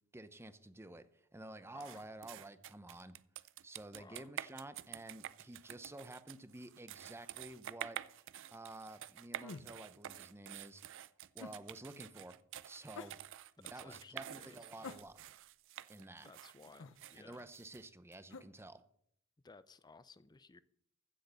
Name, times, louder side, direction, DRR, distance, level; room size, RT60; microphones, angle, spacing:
voice 1, 0.1-3.1 3.6-8.0 8.5-10.8 11.3-12.4 12.6-13.2 13.6-15.2 15.9-16.3 17.1-18.8, right 1 dB, 10° right, 11 dB, 0.7 m, -51 dB
sound 1, 1.8-18.2, right 11 dB, 60° right, 0.5 m, -49 dB
voice 2, 3.9-4.3 13.6-14.9 16.2-17.5 19.4-20.6, left 3 dB, 20° left, 15 dB, 0.5 m, -58 dB
sound 2, 9.4-9.7 11.4-11.6 12.9-13.2 14.8-15.4 16.8-17.0 18.3-18.5, left 3 dB, 65° left, 0.8 m, -49 dB
15.0 x 6.5 x 6.7 m, 0.70 s
head